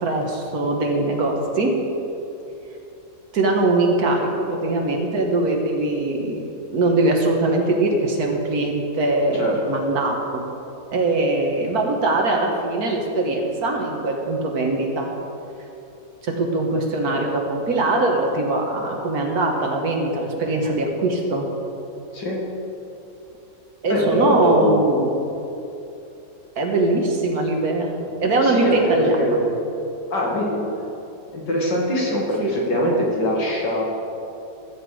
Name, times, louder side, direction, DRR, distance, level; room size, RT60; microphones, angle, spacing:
voice 1, 0.0-1.7 3.3-6.4 6.7-10.4 10.9-15.1 16.2-21.5 23.8-25.1 26.6-29.4 32.4-32.5, right 2 dB, 55° right, 1 dB, 1.7 m, -21 dB
voice 2, 23.9-24.9 28.4-29.5 30.1-30.6 31.3-33.8, equal, 65° left, -3 dB, 2.3 m, -23 dB
14.0 x 8.3 x 4.9 m, 2.8 s
omnidirectional pair, 2.1 m